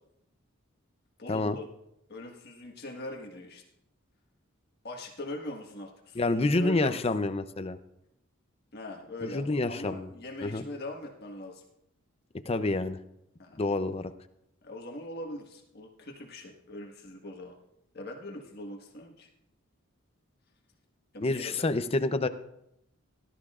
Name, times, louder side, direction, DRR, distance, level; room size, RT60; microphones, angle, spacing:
voice 1, 1.2-1.6 2.1-3.6 4.8-7.0 8.7-11.6 13.4-13.6 14.6-17.5 17.9-19.3 21.1-21.7, left 1 dB, 50° left, 1 dB, 1.5 m, -41 dB
voice 2, 6.1-7.8 9.2-10.1 10.4-10.7 12.5-13.0 13.6-14.1 21.2-22.3, left 2 dB, 30° left, 11 dB, 0.6 m, -28 dB
18.0 x 12.0 x 2.5 m, 0.81 s
head